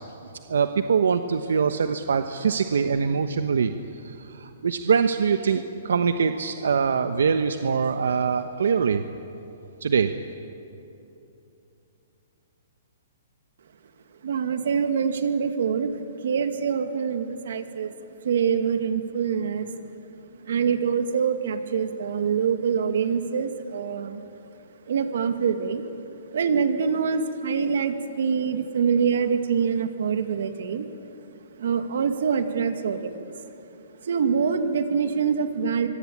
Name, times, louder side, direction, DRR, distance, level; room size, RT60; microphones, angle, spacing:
voice 1, 0.5-9.0 9.8-10.1, right 6 dB, 90° right, 8 dB, 1.1 m, -23 dB
voice 2, 14.2-15.9 16.2-17.9 18.2-19.7 20.5-24.2 24.9-25.9 26.3-30.9 31.6-33.2 34.0-35.9, right 6 dB, 65° right, 7 dB, 2.2 m, -25 dB
25.0 x 23.5 x 8.8 m, 2.8 s
hypercardioid pair, 170°, 0 cm